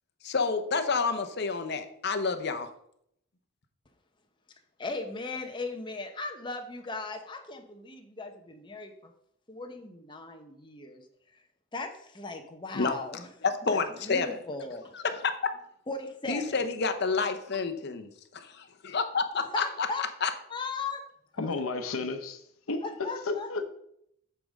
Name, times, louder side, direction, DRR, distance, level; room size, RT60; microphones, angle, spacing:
voice 1, 0.2-2.7 12.7-13.0 13.4-14.4 14.9-15.5 16.3-19.6 20.2-20.3, left 4 dB, 55° left, 0.8 m, -29 dB
voice 2, 4.8-9.1 9.5-11.0 11.7-13.3 13.7-15.0 15.9-16.6 19.5-20.0 20.5-21.0 22.8-23.6, left 3 dB, 25° left, 0.8 m, -37 dB
voice 3, 21.4-22.4 22.7-23.6, left 3 dB, 85° left, 0.8 m, -32 dB
8.4 x 3.6 x 6.4 m
head